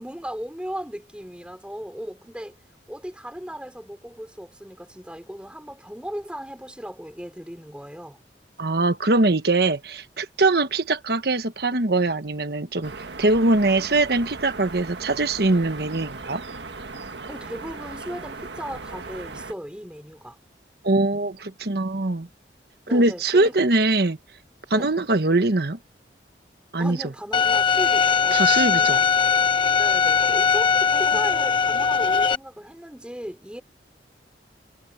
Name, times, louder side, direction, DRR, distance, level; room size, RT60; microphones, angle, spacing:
voice 1, 0.0-2.6 2.9-8.2 17.3-20.4 22.9-23.6 24.7-24.9 26.8-29.1 29.8-33.6, equal, 5° right, 3.3 m, -36 dB
voice 2, 8.6-16.4 20.8-22.3 22.9-24.2 24.7-25.8 26.7-27.0 28.3-29.0, right 2 dB, 60° right, 1.3 m, -22 dB
sound 1, 12.8-19.5, right 3 dB, 80° right, 1.6 m, -38 dB
Bowed string instrument, 27.3-32.3, left 6 dB, 30° left, 1.1 m, -20 dB
head